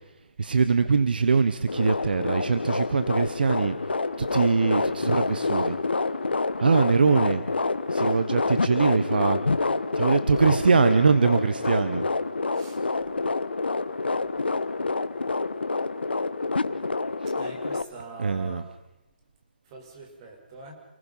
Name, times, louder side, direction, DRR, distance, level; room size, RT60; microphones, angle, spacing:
voice 1, 0.4-3.8 4.2-5.8 6.6-7.4 7.9-9.4 9.9-12.1 18.2-18.6, right 5 dB, 65° right, 11 dB, 1.3 m, -22 dB
sound 1, 1.7-17.8, left 3 dB, 85° left, 1.3 m, -27 dB
voice 2, 17.3-18.7 19.7-20.7, right 3 dB, 30° right, 2 dB, 5.8 m, -44 dB
29.0 x 19.0 x 5.7 m, 0.94 s
figure-of-eight pair, 145°, 5 cm